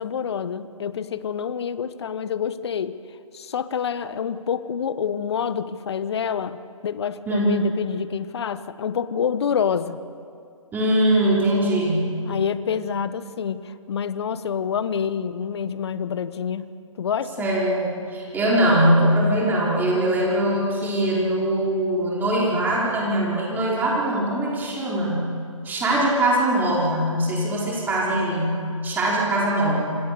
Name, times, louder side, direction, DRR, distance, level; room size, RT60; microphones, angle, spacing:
voice 1, 0.0-3.0 3.3-10.0 12.3-16.7 17.0-17.5, left 7 dB, 50° left, 14 dB, 1.2 m, -27 dB
voice 2, 10.7-12.1 17.4-25.2 25.6-30.0, right 1 dB, 10° right, -5 dB, 4.7 m, -22 dB
28.0 x 26.0 x 6.9 m, 2.4 s
figure-of-eight pair, 135°, 17 cm